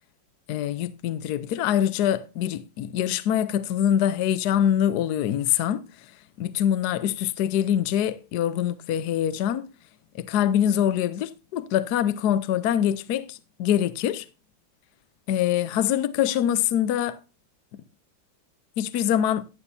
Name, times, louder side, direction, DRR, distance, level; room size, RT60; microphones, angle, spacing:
voice 1, 0.5-5.9 6.4-9.7 10.1-14.3 15.3-17.2 17.7-17.8 18.8-19.4, left 10 dB, 65° left, 1.1 m, -24 dB
11.0 x 11.0 x 2.7 m
omnidirectional pair, 2.1 m